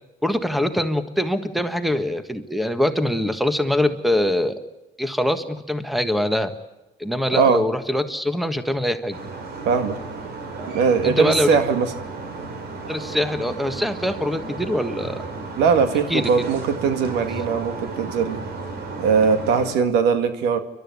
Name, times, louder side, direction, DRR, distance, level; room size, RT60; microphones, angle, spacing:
voice 1, 0.2-4.6 5.0-6.5 7.0-9.2 11.0-11.6 12.9-15.2 16.1-16.2, left 1 dB, ahead, 10 dB, 1.6 m, -23 dB
sound 1, 9.1-19.7, right 3 dB, 70° right, 4.0 m, -34 dB
voice 2, 9.7-10.0 10.7-11.9 15.6-18.4 19.0-20.6, right 6 dB, 85° right, 9 dB, 2.2 m, -20 dB
29.5 x 12.5 x 9.8 m, 1.0 s
cardioid pair, 110°, 17 cm